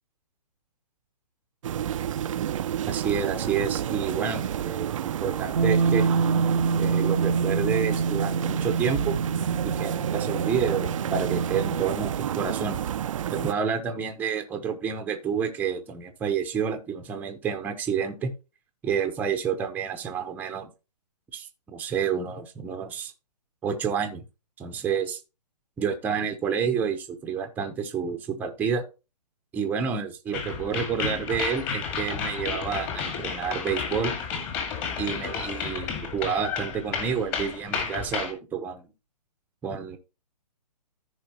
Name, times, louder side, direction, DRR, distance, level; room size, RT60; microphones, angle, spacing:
sound 1, 1.6-13.5, right 10 dB, 50° right, 0.5 m, -30 dB
voice 1, 2.9-6.1 6.8-9.2 9.6-12.8 13.3-18.3 18.8-20.7 21.3-23.1 23.6-24.2 24.6-25.2 25.8-28.8 29.5-34.1 35.0-38.8 39.6-40.0, right 6 dB, 10° right, 5 dB, 0.8 m, -29 dB
Bass guitar, 5.6-11.8, right 5 dB, 80° right, 0.7 m, -26 dB
sound 2, 30.3-38.3, left 6 dB, 25° left, 2.0 m, -32 dB
14.5 x 5.0 x 2.9 m, 0.29 s
hypercardioid pair, 145°, 21 cm